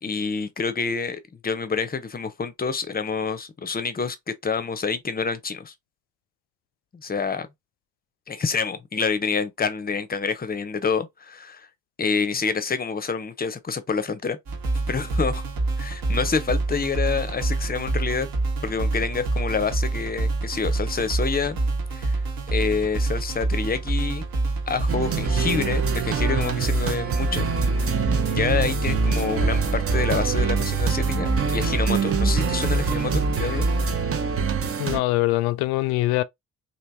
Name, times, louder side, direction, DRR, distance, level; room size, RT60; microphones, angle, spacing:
voice 1, 0.0-5.7 6.9-7.5 8.3-11.7 12.0-14.4 14.9-15.4 15.8-18.3 18.6-21.6 21.9-22.2 22.5-24.2 24.7-27.5 28.2-33.7, left 5 dB, 20° left, 0.7 m, -27 dB
sound 1, 14.5-33.9, right 2 dB, 55° right, 1.3 m, -26 dB
sound 2, 24.9-35.0, right 5 dB, 35° right, 0.7 m, -25 dB
voice 2, 34.8-36.2, left 18 dB, 65° left, 0.5 m, -23 dB
3.3 x 2.6 x 2.7 m
hypercardioid pair, 40°, 42 cm